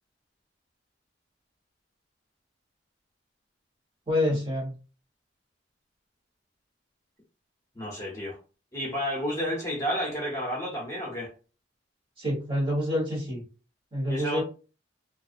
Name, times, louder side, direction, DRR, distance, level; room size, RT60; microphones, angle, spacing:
voice 1, 4.1-4.7 12.2-13.4 13.9-14.4, left 1 dB, 25° right, 1.2 m, -27 dB
voice 2, 7.7-8.4 8.7-11.3 14.1-14.4, equal, 15° left, 0.9 m, -31 dB
2.4 x 2.3 x 2.5 m
head